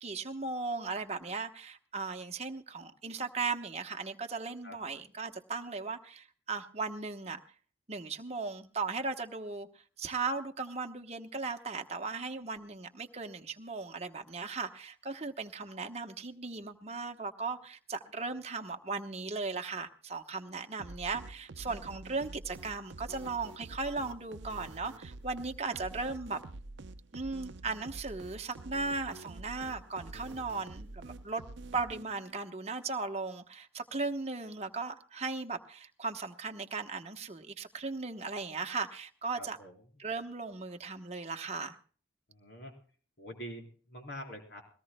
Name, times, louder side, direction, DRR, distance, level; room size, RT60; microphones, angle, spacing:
voice 1, 0.0-7.4 7.9-9.7 10.0-26.4 27.1-31.4 31.7-39.6 40.0-41.8, right 4 dB, 35° right, 6 dB, 1.0 m, -37 dB
sound 1, 20.8-32.4, right 2 dB, 70° right, 0.6 m, -47 dB
voice 2, 39.4-39.7 42.3-42.7 43.2-44.6, equal, 60° left, 3 dB, 4.2 m, -45 dB
22.0 x 18.5 x 2.2 m, 0.42 s
head